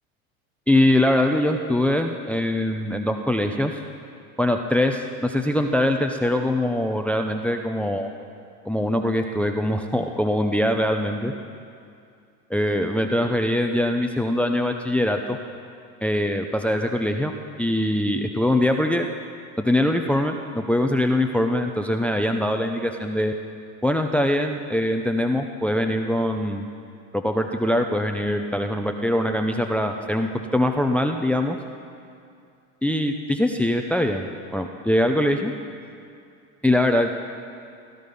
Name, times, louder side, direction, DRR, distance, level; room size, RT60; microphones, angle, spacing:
voice 1, 0.7-3.8 4.4-8.1 8.7-11.3 12.5-15.4 16.0-17.3 17.6-19.1 19.6-23.3 23.8-26.7 27.1-31.6 32.8-34.3 34.5-35.5 36.6-37.2, left 1 dB, 5° left, 5 dB, 0.8 m, -22 dB
17.0 x 12.0 x 5.5 m, 2.4 s
hypercardioid pair, 85°, 43 cm